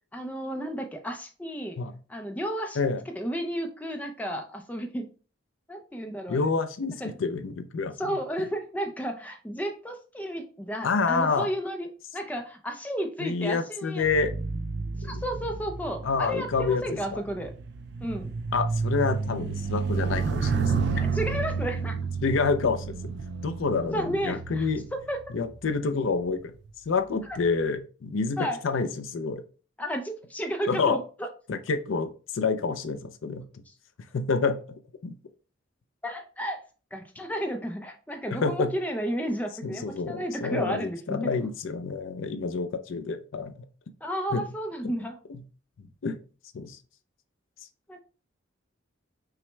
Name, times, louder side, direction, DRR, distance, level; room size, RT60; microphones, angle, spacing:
voice 1, 0.1-1.8 2.1-2.8 3.2-5.1 5.7-6.5 7.0-7.2 8.0-11.9 12.1-14.1 15.0-17.5 18.0-18.3 21.0-21.9 23.9-25.2 27.3-27.4 28.4-28.6 29.8-31.0 33.7-33.8 36.0-36.6 36.9-41.3 44.0-45.2 47.9-48.0, equal, 10° left, 4 dB, 0.4 m, -32 dB
voice 2, 6.3-7.9 10.8-11.5 13.2-14.3 15.0-15.2 16.0-16.8 17.1-17.2 18.5-20.7 22.2-23.1 23.4-24.8 25.3-26.5 26.9-29.4 30.7-31.0 31.5-33.6 34.1-34.6 35.0-35.1 38.3-38.7 39.6-43.6 44.3-44.4 45.3-45.4 45.8-46.2 46.5-46.8, left 4 dB, 85° left, 9 dB, 0.5 m, -28 dB
sound 1, 14.0-25.7 26.4-26.7, right 4 dB, 60° right, 0.4 m, -31 dB
5.7 x 2.1 x 3.2 m, 0.37 s
head